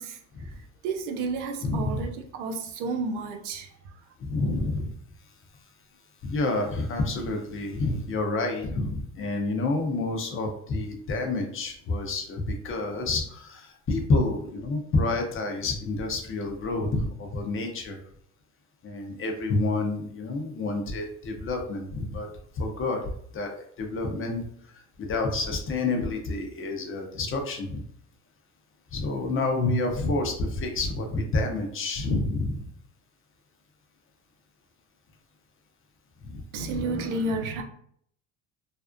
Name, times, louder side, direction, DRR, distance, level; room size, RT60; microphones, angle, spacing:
voice 1, 0.0-4.0 36.5-37.6, right 3 dB, 85° right, 0.5 m, -32 dB
voice 2, 1.6-2.0 4.2-4.9 6.2-18.0 18.8-22.3 22.5-24.7 25.0-27.8 28.9-32.7 36.2-36.4 36.8-36.9, left 2 dB, 35° left, 0.7 m, -29 dB
2.5 x 2.0 x 2.5 m
supercardioid pair, 75°, 35 cm